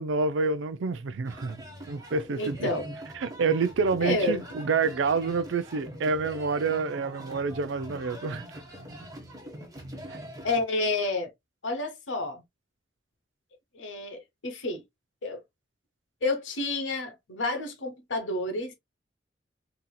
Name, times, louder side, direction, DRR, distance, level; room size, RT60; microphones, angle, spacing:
voice 1, 0.0-2.7 3.2-8.4 10.1-10.2, right 4 dB, 80° right, 0.4 m, -28 dB
sound 1, 1.2-10.6, equal, 20° right, 1.0 m, -43 dB
voice 2, 2.4-3.0 4.0-4.5 10.4-11.3 11.6-12.4 13.7-14.8 15.2-15.4 16.2-18.7, left 2 dB, 90° left, 1.0 m, -30 dB
4.0 x 2.8 x 2.2 m
head